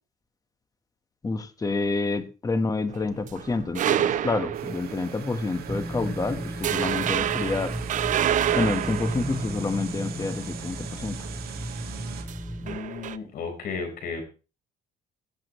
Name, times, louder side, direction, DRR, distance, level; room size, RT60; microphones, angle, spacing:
voice 1, 1.2-7.7 8.5-11.2, left 3 dB, 20° left, 9 dB, 1.4 m, -28 dB
sound 1, 2.9-5.1 5.6-5.8 6.1-6.3 6.6-10.1 12.2-13.2, right 10 dB, 50° right, 0.6 m, -27 dB
sound 2, 4.5-12.2, right 9 dB, 65° right, 2.0 m, -41 dB
sound 3, 5.7-12.8, equal, 5° left, 0.8 m, -35 dB
voice 2, 12.6-14.2, left 5 dB, 60° left, 5 dB, 4.6 m, -34 dB
17.0 x 7.5 x 3.2 m, 0.32 s
cardioid pair, 110°, 17 cm